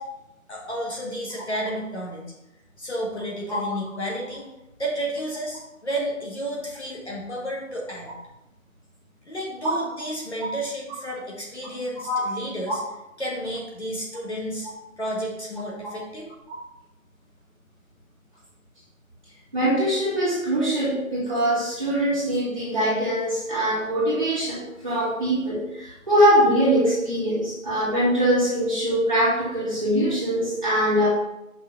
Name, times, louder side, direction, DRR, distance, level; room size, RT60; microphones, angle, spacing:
voice 1, 0.5-2.2 2.8-4.4 4.8-8.1 9.2-12.8 13.2-14.7 15.0-16.3, right 1 dB, 50° left, -3 dB, 1.6 m, -31 dB
voice 2, 19.5-31.1, equal, 25° right, -9 dB, 2.5 m, -22 dB
5.7 x 4.0 x 5.1 m, 0.90 s
figure-of-eight pair, 175°, 42 cm